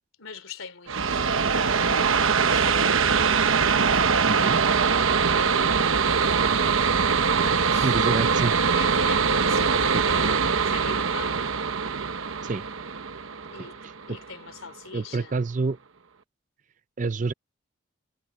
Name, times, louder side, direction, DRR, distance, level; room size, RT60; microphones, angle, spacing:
voice 1, 0.2-6.7 7.3-8.2 8.7-11.4 13.5-13.8 14.1-15.4, left 4 dB, 85° left, 3.3 m, -42 dB
sound 1, 0.9-14.3, right 5 dB, 80° right, 1.0 m, -22 dB
voice 2, 4.3-4.6 7.8-8.5 9.9-10.0 12.4-12.6 13.8-14.2 14.9-15.8 17.0-17.3, right 3 dB, 35° right, 0.4 m, -28 dB
head